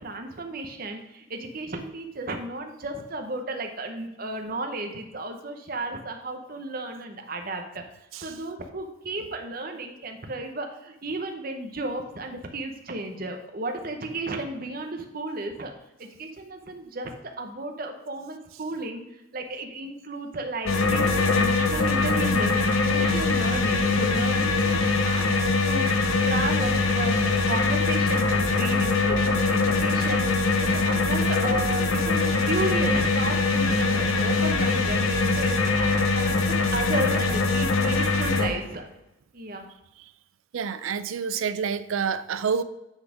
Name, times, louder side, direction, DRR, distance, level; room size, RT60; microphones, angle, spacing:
voice 1, 0.0-7.8 8.2-15.7 16.0-19.0 19.3-38.8 39.3-39.7, right 2 dB, 45° right, 4 dB, 0.9 m, -34 dB
sound 1, 20.7-38.5, left 3 dB, 85° left, 0.9 m, -23 dB
voice 2, 40.5-42.6, right 6 dB, 75° right, 13 dB, 0.4 m, -28 dB
8.8 x 4.2 x 5.0 m, 0.90 s
head